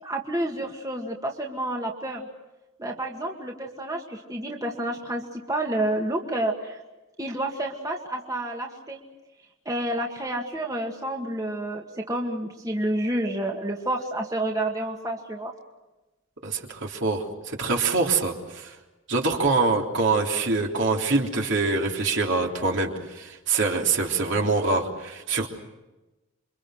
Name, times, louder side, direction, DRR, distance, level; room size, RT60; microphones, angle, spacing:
voice 1, 0.0-2.2 2.8-6.8 7.2-9.0 9.7-15.5, right 1 dB, 15° right, 0 dB, 2.0 m, -29 dB
voice 2, 16.4-18.7 19.1-25.5, right 3 dB, 60° right, 1 dB, 3.5 m, -25 dB
29.0 x 24.5 x 6.5 m, 1.1 s
head